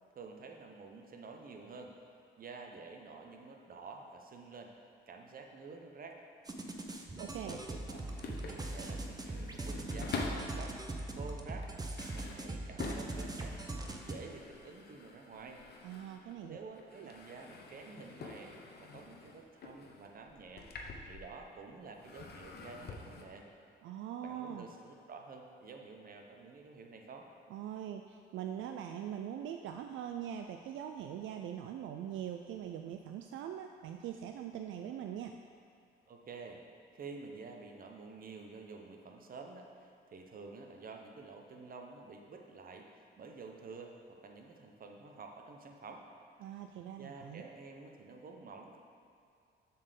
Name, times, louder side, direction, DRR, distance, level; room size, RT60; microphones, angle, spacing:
voice 1, 0.1-2.0 2.4-4.7 5.1-6.2 7.1-10.8 11.1-11.7 12.1-13.6 14.0-15.6 16.5-20.7 21.0-23.5 24.2-27.3 36.1-36.6 36.9-46.1 47.0-48.8, right 4 dB, 45° right, 2 dB, 0.9 m, -50 dB
sound 1, 6.5-14.2, right 2 dB, 20° right, 0.8 m, -41 dB
sound 2, 6.8-10.6 11.2-16.5 16.7-21.6 21.9-23.2, left 3 dB, 55° left, 0.9 m, -47 dB
voice 2, 7.2-7.6 15.8-16.6 17.0-17.1 23.8-24.7 27.5-35.4 46.4-47.4, right 9 dB, 75° right, 5 dB, 0.4 m, -42 dB
7.2 x 4.4 x 6.8 m, 2.4 s
cardioid pair, 90°, 20 cm